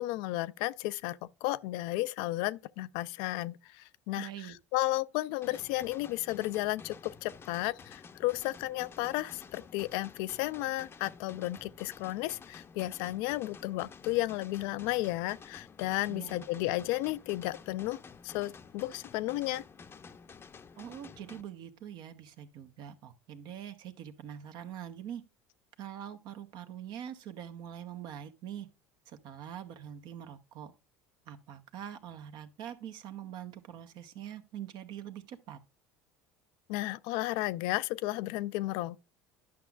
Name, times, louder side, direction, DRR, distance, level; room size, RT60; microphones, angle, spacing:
voice 1, 0.0-4.3 4.7-19.6 36.7-39.1, left 17 dB, 70° left, 0.4 m, -33 dB
voice 2, 4.2-4.6 16.1-16.5 20.7-25.2 25.8-28.7 29.1-30.7 31.3-35.6, right 10 dB, 60° right, 1.0 m, -44 dB
sound 1, 5.4-21.4, left 5 dB, 30° left, 0.6 m, -51 dB
11.0 x 6.0 x 2.4 m
hypercardioid pair, 85°, 8 cm